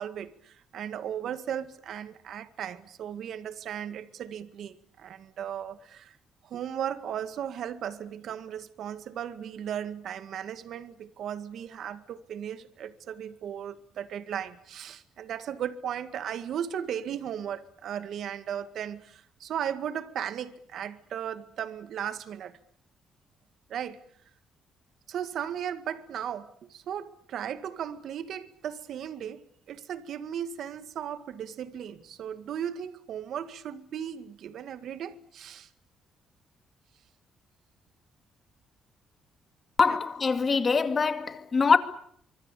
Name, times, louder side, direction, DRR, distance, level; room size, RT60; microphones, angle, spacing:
voice 1, 0.0-6.2 6.4-22.6 23.7-24.0 25.1-35.7 39.9-40.0, right 9 dB, 70° right, 1.9 m, -36 dB
voice 2, 39.8-41.8, left 5 dB, 35° left, 2.4 m, -23 dB
25.0 x 24.5 x 8.4 m
cardioid pair, 90°, 0 cm